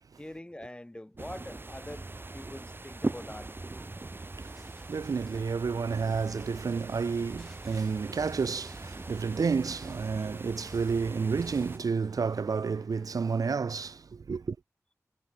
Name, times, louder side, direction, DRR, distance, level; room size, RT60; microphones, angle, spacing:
voice 1, 0.2-2.1 2.3-3.5, left 1 dB, 15° left, 6.8 m, -44 dB
sound 1, 1.2-11.8, right 2 dB, 35° right, 1.4 m, -41 dB
sound 2, 4.4-13.6, equal, ahead, 6.3 m, -59 dB
voice 2, 4.9-14.6, right 5 dB, 80° right, 0.6 m, -30 dB
wide cardioid pair, 65°, 6 cm